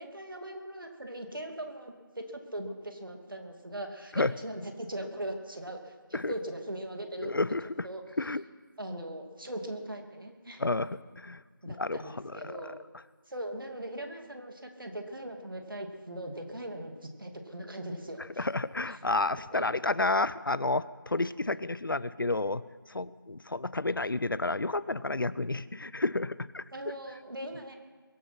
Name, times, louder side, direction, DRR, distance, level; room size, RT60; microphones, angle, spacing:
voice 1, 0.0-7.3 7.8-8.0 8.8-10.6 11.6-12.7 13.3-18.5 19.5-19.6 26.7-27.7, right 1 dB, 70° right, 4 dB, 2.5 m, -40 dB
voice 2, 7.2-7.9 8.2-8.4 10.6-11.4 11.7-12.6 18.4-22.6 22.9-26.6, left 2 dB, 70° left, 18 dB, 0.6 m, -30 dB
23.0 x 8.6 x 6.0 m, 1.5 s
figure-of-eight pair, 175°, 12 cm